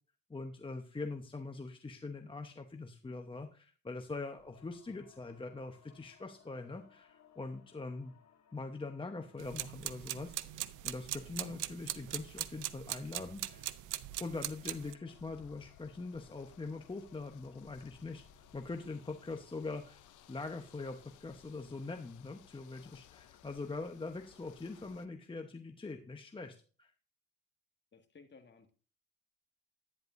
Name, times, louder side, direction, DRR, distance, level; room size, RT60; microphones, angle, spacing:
voice 1, 0.3-8.2 8.5-13.7 14.2-26.9, left 3 dB, 15° left, 4 dB, 0.9 m, -43 dB
sound 1, 4.4-20.5, left 7 dB, 60° left, 2.1 m, -66 dB
sound 2, 9.4-14.9, right 14 dB, 85° right, 0.7 m, -41 dB
sound 3, 15.1-25.1, left 10 dB, 80° left, 0.8 m, -61 dB
voice 2, 27.9-28.7, left 4 dB, 35° left, 6 dB, 1.9 m, -58 dB
11.0 x 10.0 x 2.6 m, 0.39 s
cardioid pair, 90°, 30 cm